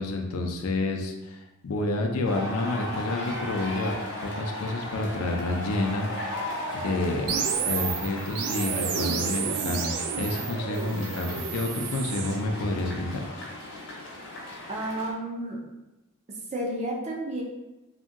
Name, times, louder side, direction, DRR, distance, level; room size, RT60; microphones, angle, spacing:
voice 1, 0.0-4.0 4.2-6.1 6.7-7.3 7.6-13.3, left 2 dB, 75° left, 3 dB, 0.4 m, -29 dB
sound 1, 2.2-15.1, left 1 dB, 60° left, 0.8 m, -36 dB
sound 2, 7.3-12.4, right 7 dB, 90° right, 0.3 m, -31 dB
voice 2, 14.7-15.6 16.5-17.4, right 1 dB, 30° right, -2 dB, 0.5 m, -31 dB
2.8 x 2.5 x 2.4 m, 1.0 s
head